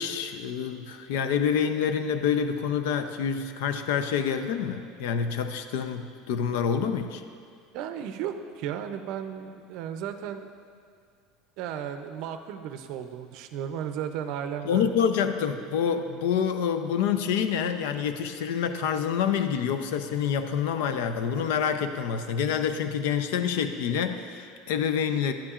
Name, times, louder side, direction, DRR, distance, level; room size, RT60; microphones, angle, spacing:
voice 1, 0.0-7.2 14.6-25.3, left 7 dB, 75° left, 9 dB, 0.5 m, -27 dB
voice 2, 7.7-10.5 11.6-14.9, right 9 dB, 50° right, 8 dB, 0.5 m, -34 dB
11.5 x 9.9 x 2.4 m, 2.2 s
cardioid pair, 165°, 0 cm